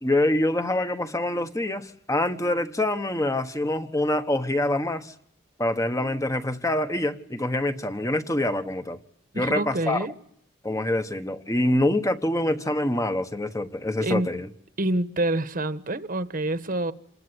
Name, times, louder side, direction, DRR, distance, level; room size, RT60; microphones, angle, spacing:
voice 1, 0.0-5.1 5.6-9.0 9.3-10.1 10.6-14.5, left 1 dB, 15° left, 1.3 m, -25 dB
voice 2, 9.3-10.1 14.0-14.3 14.8-16.9, right 1 dB, 45° right, 1.4 m, -27 dB
28.0 x 20.5 x 9.8 m
head